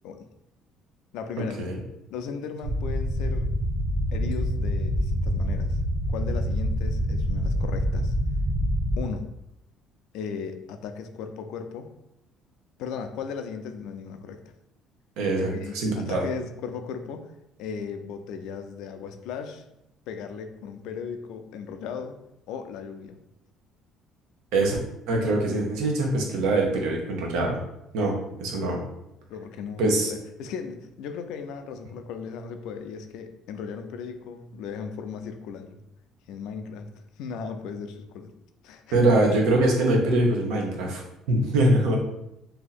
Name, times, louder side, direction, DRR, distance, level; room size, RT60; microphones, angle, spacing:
voice 1, 1.1-1.6 2.1-3.5 4.1-5.8 6.1-8.2 9.0-9.3 10.1-11.9 12.8-14.4 15.4-17.3 17.6-19.6 20.1-22.2 22.5-23.2 29.3-35.8 36.3-38.3 38.6-39.1, left 6 dB, 75° left, 7 dB, 0.4 m, -37 dB
sound 1, 2.6-9.0, equal, 30° right, 0.9 m, -26 dB
voice 2, 15.2-16.2 24.5-24.8 25.1-27.6 27.9-28.1 28.4-28.8 29.8-30.1 38.9-42.0, right 2 dB, 85° right, 0 dB, 0.9 m, -23 dB
2.8 x 2.7 x 4.0 m, 0.84 s
cardioid pair, 140°, 0 cm